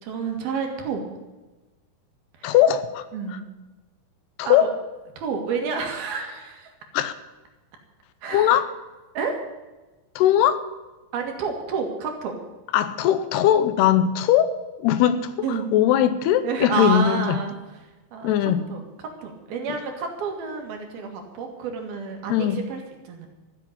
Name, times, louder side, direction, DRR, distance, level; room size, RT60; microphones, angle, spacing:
voice 1, 0.0-1.0 2.4-2.6 3.1-3.4 4.5-4.6 5.2-6.7 8.2-8.5 9.2-9.4 11.1-12.4 15.4-15.7 16.4-17.5 18.1-18.3 18.7-18.8 19.2-23.3, right 5 dB, 70° right, 3 dB, 3.7 m, -29 dB
voice 2, 2.4-3.4 4.4-4.7 6.9-7.1 8.3-8.7 10.2-10.6 12.7-17.4 18.2-18.6 22.3-22.6, left 10 dB, 85° left, 12 dB, 2.9 m, -20 dB
14.5 x 7.5 x 9.7 m, 1.1 s
omnidirectional pair, 4.6 m